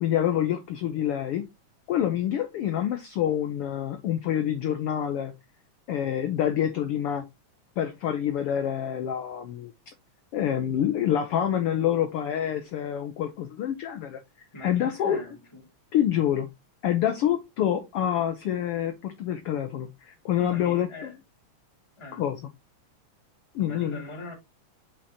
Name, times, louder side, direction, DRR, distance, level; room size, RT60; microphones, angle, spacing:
voice 1, 0.0-1.4 1.9-5.3 5.9-7.2 7.8-9.9 10.3-14.2 14.6-15.2 15.9-16.5 16.8-21.1 22.1-22.4 23.5-24.0, left 10 dB, 75° left, 1.4 m, -27 dB
voice 2, 14.5-15.7 20.4-21.1 22.0-22.2 23.6-24.3, left 2 dB, 10° left, 2.3 m, -41 dB
6.7 x 5.4 x 2.8 m
omnidirectional pair, 3.4 m